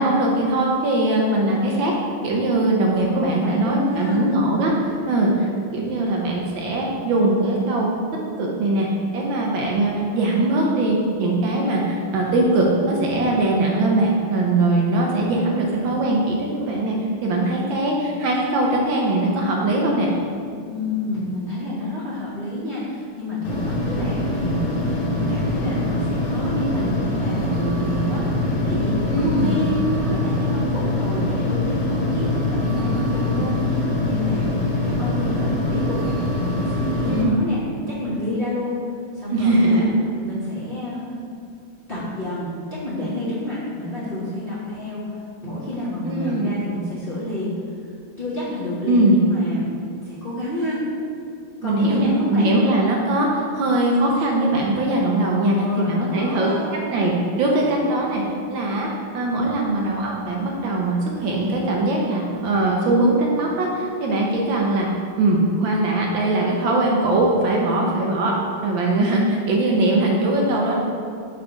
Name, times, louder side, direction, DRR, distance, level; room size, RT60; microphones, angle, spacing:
voice 1, 0.0-1.9 2.2-7.9 8.4-8.9 9.1-16.9 17.2-20.1 29.0-29.5 37.1-37.4 39.3-39.8 46.0-46.6 48.9-49.2 51.6-56.5 56.9-57.1 57.4-58.2 58.5-58.9 59.1-64.9 65.2-68.3 68.6-70.7, right 2 dB, 70° right, -2 dB, 1.4 m, -21 dB
voice 2, 2.9-4.2 20.7-38.8 39.1-39.9 40.2-41.2 41.9-45.1 45.4-47.6 48.2-49.7 50.0-50.8 51.6-52.6 55.4-56.7, left 1 dB, 35° left, -10 dB, 1.0 m, -29 dB
sound 1, 23.4-37.2, left 1 dB, 85° left, 2.0 m, -23 dB
5.9 x 3.4 x 5.0 m, 2.4 s
omnidirectional pair, 2.4 m